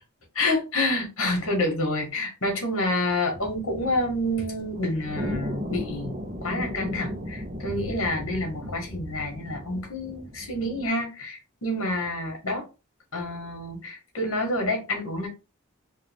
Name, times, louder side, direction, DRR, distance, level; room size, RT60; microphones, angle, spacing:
voice 1, 0.3-12.6 13.1-15.3, left 1 dB, 70° left, 1.7 m, -28 dB
sound 1, 3.3-10.9, equal, 35° right, 0.6 m, -36 dB
3.9 x 2.3 x 3.5 m
head